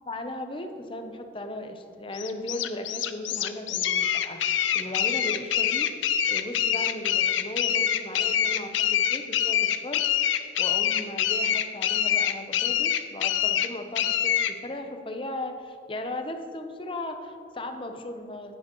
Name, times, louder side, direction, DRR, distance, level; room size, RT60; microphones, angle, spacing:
voice 1, 0.1-4.4 4.7-5.9 6.3-10.0 10.6-18.5, left 1 dB, 25° left, 6 dB, 0.6 m, -36 dB
sound 1, 2.1-14.5, left 10 dB, 80° left, 0.5 m, -25 dB
10.5 x 10.0 x 3.0 m, 2.5 s
head